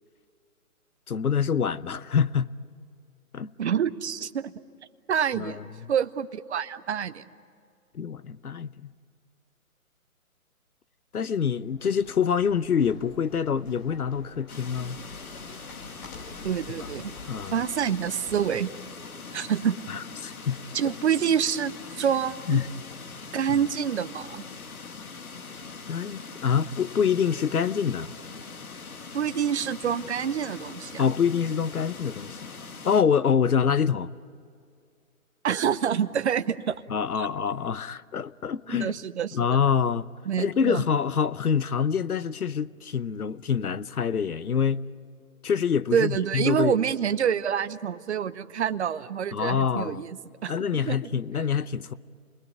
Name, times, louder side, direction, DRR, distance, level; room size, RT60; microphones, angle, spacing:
voice 1, 1.1-2.5 3.3-3.5 5.3-5.9 7.9-8.9 11.1-15.0 17.3-17.6 19.9-20.6 22.5-22.7 23.5-23.6 25.9-28.1 31.0-32.4 32.8-34.1 36.9-39.0 39.3-40.1 40.4-44.8 45.4-46.8 49.3-50.1 50.5-51.9, left 7 dB, 90° left, 0.9 m, -26 dB
voice 2, 3.6-4.5 5.1-5.6 5.9-7.2 16.4-17.1 17.5-18.7 19.3-19.8 20.7-22.6 23.3-24.4 29.1-31.1 35.4-36.8 37.2-37.3 38.7-39.5 40.3-40.8 45.9-50.5 50.8-51.0, right 8 dB, 50° right, 0.9 m, -27 dB
sound 1, 11.6-18.7, left 2 dB, 30° left, 7.4 m, -48 dB
sound 2, 14.5-33.0, left 4 dB, 75° left, 1.9 m, -42 dB
29.5 x 20.5 x 9.3 m
hypercardioid pair, 150°, 43 cm